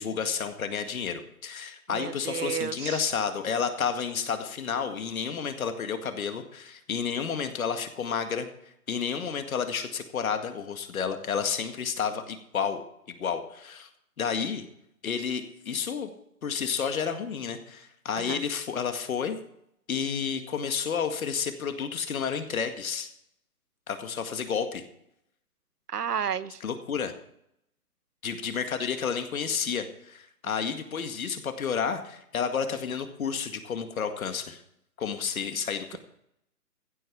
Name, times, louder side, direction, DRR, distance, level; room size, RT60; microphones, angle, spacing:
voice 1, 0.0-8.5 8.9-12.8 13.1-13.9 14.2-14.6 15.0-16.1 16.4-19.4 19.9-23.1 23.9-24.9 26.6-27.1 28.2-34.6 35.0-36.0, left 6 dB, 60° left, 8 dB, 2.1 m, -31 dB
voice 2, 1.9-3.0 18.2-18.4 25.9-26.6, right 8 dB, 80° right, 16 dB, 1.0 m, -32 dB
15.5 x 8.0 x 5.9 m, 0.74 s
hypercardioid pair, 145°, 46 cm